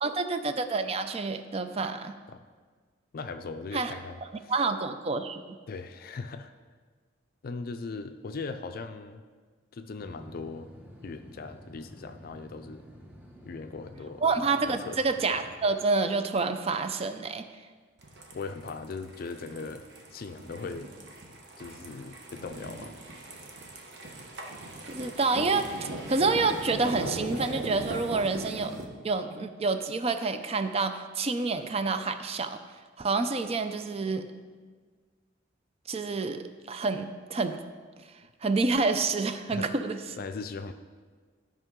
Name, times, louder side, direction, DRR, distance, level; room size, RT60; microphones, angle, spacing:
voice 1, 0.0-2.2 3.7-3.9 4.5-5.4 14.2-17.4 24.9-28.7 29.0-32.6 33.0-34.2 35.9-37.6 38.4-40.0, right 3 dB, 30° right, 9 dB, 0.4 m, -28 dB
voice 2, 3.1-4.5 5.7-6.5 7.4-9.2 9.7-10.7 11.0-12.8 13.4-14.2 14.7-15.0 18.3-19.8 20.1-20.9 21.6-22.9 39.5-39.7 40.2-40.7, left 4 dB, 50° left, 8 dB, 0.4 m, -39 dB
sound 1, 10.0-15.7, equal, 10° right, 0.9 m, -50 dB
sound 2, 18.0-28.8, right 1 dB, 60° right, 1.1 m, -39 dB
12.5 x 5.5 x 3.7 m, 1.5 s
head